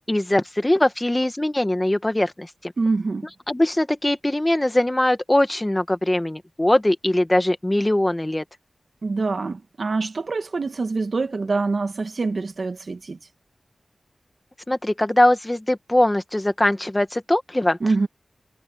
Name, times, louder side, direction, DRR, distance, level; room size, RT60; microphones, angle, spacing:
voice 1, 0.1-2.7 3.5-8.4 14.7-17.8, left 1 dB, 15° left, 1.4 m, -21 dB
voice 2, 2.8-3.3 9.0-13.2 17.8-18.1, right 3 dB, 60° right, 1.7 m, -25 dB
wide cardioid pair, 95°, 0 cm